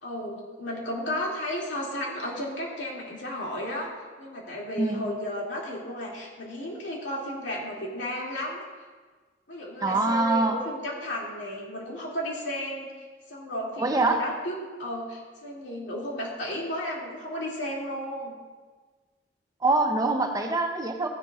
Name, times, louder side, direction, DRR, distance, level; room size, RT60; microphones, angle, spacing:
voice 1, 0.0-3.9 4.2-8.6 9.5-12.9 13.3-18.3, left 1 dB, 85° left, -3 dB, 2.5 m, -33 dB
voice 2, 9.8-10.6 13.8-14.2 19.6-21.1, right 2 dB, 20° right, 4 dB, 0.7 m, -24 dB
15.0 x 10.5 x 2.4 m, 1.4 s
head